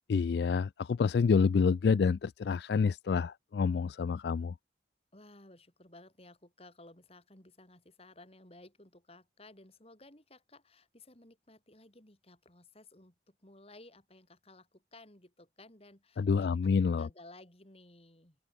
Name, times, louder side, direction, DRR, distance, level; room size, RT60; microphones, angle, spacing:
voice 1, 0.1-4.5 16.2-17.1, left 5 dB, 60° left, 0.3 m, -28 dB
voice 2, 5.1-16.6 16.9-18.4, left 2 dB, 35° left, 3.7 m, -56 dB
open air
head